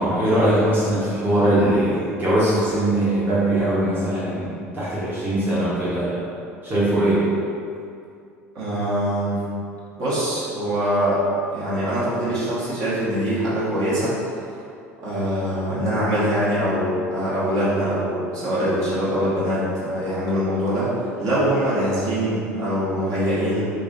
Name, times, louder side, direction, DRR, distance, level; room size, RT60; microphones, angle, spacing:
voice 1, 0.0-6.2 6.6-7.2, right 1 dB, 25° right, -11 dB, 1.1 m, -21 dB
voice 2, 8.5-9.4 10.0-11.2 11.5-14.1 14.4-14.5 15.0-20.9 21.2-23.6, equal, 45° right, -10 dB, 1.3 m, -23 dB
4.6 x 2.7 x 2.6 m, 2.4 s
figure-of-eight pair, 65°, 8 cm